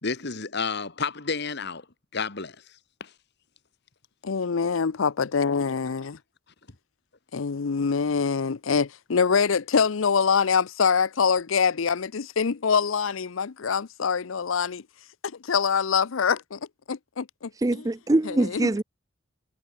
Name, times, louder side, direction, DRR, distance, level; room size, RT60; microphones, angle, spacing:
voice 1, 0.0-1.9 2.1-2.6 3.0-3.1, left 4 dB, 55° left, 2.0 m, -30 dB
voice 2, 4.2-6.1 7.3-14.8 15.2-16.6 16.9-17.9 18.2-18.7, left 6 dB, 80° left, 0.6 m, -24 dB
voice 3, 17.6-18.8, right 2 dB, 15° right, 0.4 m, -23 dB
head